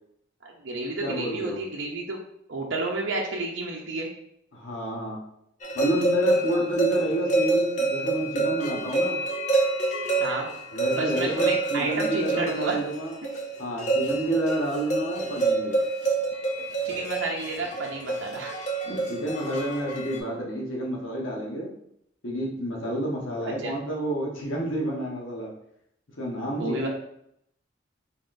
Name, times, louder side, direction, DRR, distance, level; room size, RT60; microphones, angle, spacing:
voice 1, 0.4-2.2 2.5-4.1 10.2-10.5 10.9-12.8 13.2-13.3 16.8-18.6 23.6-23.8 26.5-26.9, right 2 dB, 70° right, -1 dB, 0.6 m, -31 dB
voice 2, 1.0-1.6 4.5-5.2 5.7-9.2 10.7-13.2 13.6-15.7 18.8-21.7 22.2-25.5 26.2-26.9, right 1 dB, 85° left, -2 dB, 1.1 m, -29 dB
sound 1, 5.6-20.2, right 3 dB, 40° left, 0.6 m, -27 dB
4.1 x 3.9 x 2.6 m, 0.74 s
head